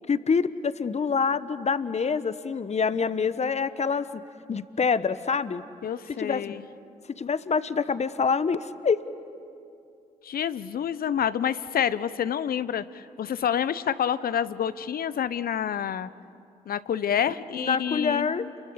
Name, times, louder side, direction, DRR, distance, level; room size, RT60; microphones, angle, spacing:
voice 1, 0.1-4.2 4.5-5.6 6.2-6.6 7.2-9.0 17.6-18.5, left 5 dB, 40° left, 14 dB, 1.1 m, -26 dB
voice 2, 5.8-6.6 10.2-16.1 16.7-18.5, left 9 dB, 60° left, 16 dB, 0.9 m, -28 dB
29.5 x 22.5 x 8.6 m, 2.6 s
hypercardioid pair, 45°, 17 cm